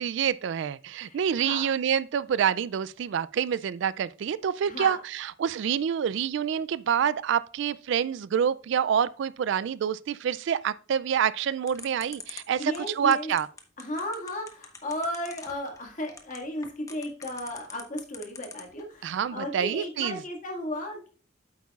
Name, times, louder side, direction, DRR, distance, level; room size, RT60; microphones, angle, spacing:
voice 1, 0.0-13.5 19.0-20.2, right 8 dB, 65° right, 0.3 m, -27 dB
voice 2, 1.0-1.7 4.6-5.0 12.6-13.3 13.8-21.1, left 1 dB, 40° left, 1.9 m, -35 dB
sound 1, 11.7-18.8, left 4 dB, 15° left, 0.8 m, -43 dB
8.4 x 8.1 x 2.4 m
head